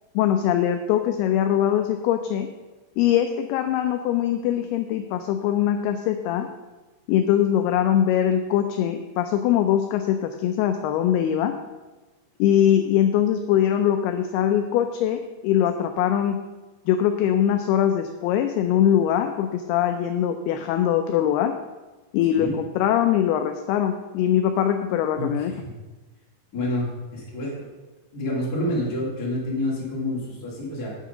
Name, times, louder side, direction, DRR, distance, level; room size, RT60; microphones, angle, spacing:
voice 1, 0.2-2.5 3.0-6.5 7.1-11.5 12.4-16.4 16.9-21.5 22.1-25.5, left 10 dB, 85° left, 7 dB, 2.3 m, -22 dB
voice 2, 25.2-25.7 26.5-27.7 28.1-31.0, left 1 dB, 30° left, -5 dB, 2.1 m, -28 dB
8.6 x 6.5 x 5.0 m, 1.2 s
omnidirectional pair, 5.0 m